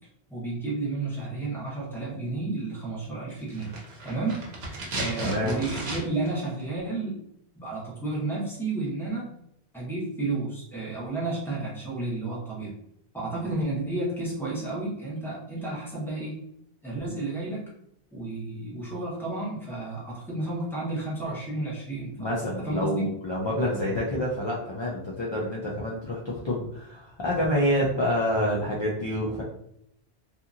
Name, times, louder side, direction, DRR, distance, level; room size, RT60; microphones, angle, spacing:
voice 1, 0.3-3.7 4.0-7.1 7.5-9.3 9.7-12.8 13.1-16.4 16.8-17.7 18.1-23.0, right 2 dB, ahead, -7 dB, 1.1 m, -32 dB
sound 1, 3.5-6.3 6.6-6.7, right 2 dB, 75° right, 0.9 m, -35 dB
voice 2, 5.2-5.5 22.2-29.4, equal, 45° left, -4 dB, 0.3 m, -27 dB
2.8 x 2.5 x 2.5 m, 0.74 s
omnidirectional pair, 1.1 m